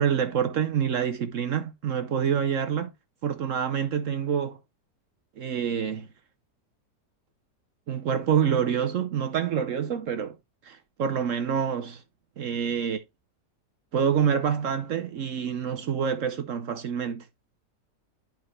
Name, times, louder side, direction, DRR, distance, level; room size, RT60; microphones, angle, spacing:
voice 1, 0.0-2.9 3.2-4.6 5.4-6.1 7.9-10.4 10.6-12.0 12.4-13.0 13.9-17.3, right 8 dB, 60° right, 0.9 m, -27 dB
11.0 x 4.3 x 3.1 m
omnidirectional pair, 1.8 m